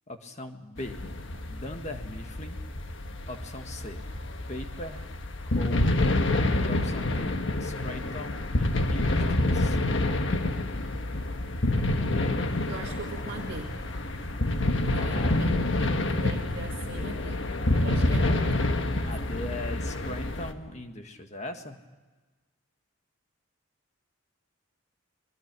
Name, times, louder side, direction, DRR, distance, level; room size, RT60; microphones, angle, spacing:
voice 1, 0.1-1.0 1.5-2.6 3.3-4.0 4.5-5.1 5.5-5.9 6.6-9.8 12.1-12.4 15.0-15.3 19.1-21.8, left 1 dB, 35° left, 6 dB, 1.7 m, -40 dB
sound 1, 0.8-20.5, left 2 dB, 60° left, 1.4 m, -28 dB
sound 2, 12.5-19.3, right 1 dB, 20° left, 2.4 m, -48 dB
voice 2, 12.7-13.7 14.8-18.5, right 2 dB, 55° right, -3 dB, 2.0 m, -41 dB
24.0 x 22.0 x 6.2 m, 1.3 s
head